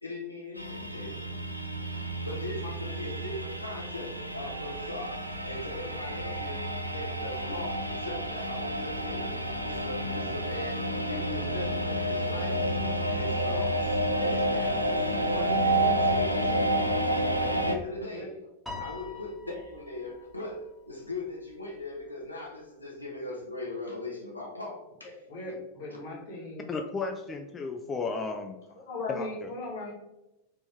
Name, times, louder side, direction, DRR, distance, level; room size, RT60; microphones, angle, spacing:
voice 1, 0.0-1.2 1.9-9.3 9.6-12.7 13.0-16.7 17.1-18.3 18.8-25.2, left 2 dB, 85° left, -2 dB, 0.7 m, -39 dB
sound 1, 0.6-17.8, right 1 dB, 90° right, 0.3 m, -30 dB
Piano, 18.7-21.1, left 4 dB, ahead, 1.1 m, -44 dB
voice 2, 25.3-26.6 28.8-29.9, left 3 dB, 55° left, -2 dB, 1.3 m, -38 dB
voice 3, 26.7-28.6 29.1-29.5, left 4 dB, 20° left, 4 dB, 0.3 m, -34 dB
3.4 x 3.0 x 3.4 m, 0.96 s
figure-of-eight pair, 90°, 0 cm